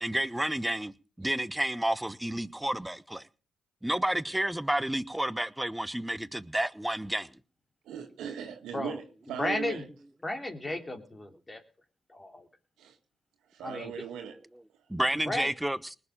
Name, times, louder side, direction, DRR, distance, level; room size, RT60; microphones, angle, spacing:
voice 1, 0.0-0.9 1.2-3.3 3.8-7.3 14.9-16.0, right 1 dB, 10° right, 1.0 m, -30 dB
voice 2, 7.9-9.8 12.8-13.0 13.5-14.4, right 8 dB, 85° right, 1.7 m, -38 dB
voice 3, 9.3-9.8 10.2-11.6 12.1-12.5 13.6-13.9 15.2-15.5, left 1 dB, 25° left, 3.3 m, -34 dB
19.5 x 6.9 x 7.4 m
supercardioid pair, 60°, 0 cm